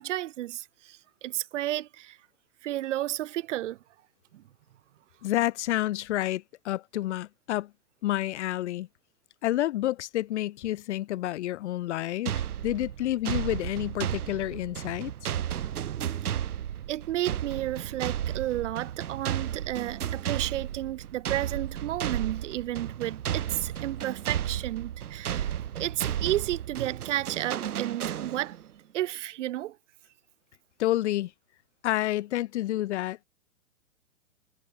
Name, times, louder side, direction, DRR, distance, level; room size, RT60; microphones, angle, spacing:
voice 1, 0.0-2.2 2.6-3.8 4.3-4.4 16.9-28.6 28.9-29.8, right 14 dB, 55° right, 2.0 m, -32 dB
voice 2, 5.2-7.7 8.0-8.9 9.4-15.1 30.8-31.3 31.8-33.2, left 14 dB, 50° left, 1.0 m, -29 dB
sound 1, 12.3-28.7, right 10 dB, 85° right, 0.9 m, -33 dB
hypercardioid pair, 135°, 44 cm